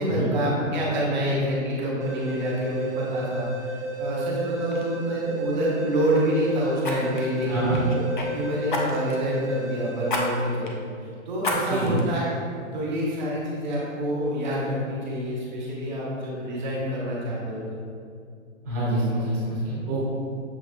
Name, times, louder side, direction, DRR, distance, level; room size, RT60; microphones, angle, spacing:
voice 1, 0.0-10.7 11.3-12.3 12.7-17.6, equal, 35° right, -5 dB, 1.1 m, -27 dB
sound 1, 2.0-10.9, right 1 dB, 80° right, 0.7 m, -32 dB
Fire, 4.1-4.3 4.7-4.9 6.8-8.3 8.7-9.2 10.1-10.2 10.7-10.8 11.4-12.0 12.5-12.6, left 2 dB, 40° left, 0.5 m, -30 dB
voice 2, 7.5-7.8 11.7-12.0 18.6-20.1, right 1 dB, 10° right, -11 dB, 0.9 m, -26 dB
7.0 x 2.9 x 2.4 m, 2.3 s
hypercardioid pair, 175°, 39 cm